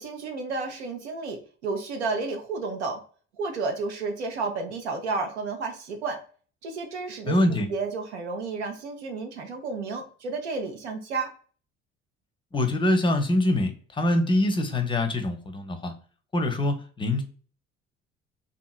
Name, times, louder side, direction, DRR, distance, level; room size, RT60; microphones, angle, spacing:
voice 1, 0.0-3.0 3.4-6.2 6.6-11.3, right 4 dB, 80° right, 4 dB, 0.6 m, -32 dB
voice 2, 7.3-7.7 12.5-15.9 16.3-17.2, left 1 dB, 15° left, 6 dB, 0.6 m, -24 dB
2.9 x 2.6 x 2.3 m, 0.42 s
figure-of-eight pair, 50°, 33 cm